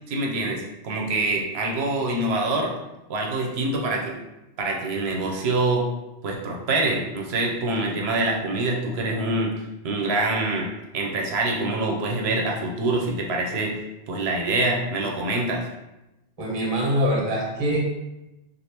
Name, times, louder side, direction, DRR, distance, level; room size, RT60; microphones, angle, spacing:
voice 1, 0.1-2.7 3.1-4.2 4.6-5.9 6.2-9.6 9.8-10.7 10.9-13.7 14.1-15.7, right 2 dB, 65° right, 0 dB, 0.8 m, -25 dB
voice 2, 16.4-17.8, equal, 35° right, -3 dB, 0.7 m, -24 dB
3.3 x 2.4 x 2.8 m, 0.96 s
omnidirectional pair, 1.2 m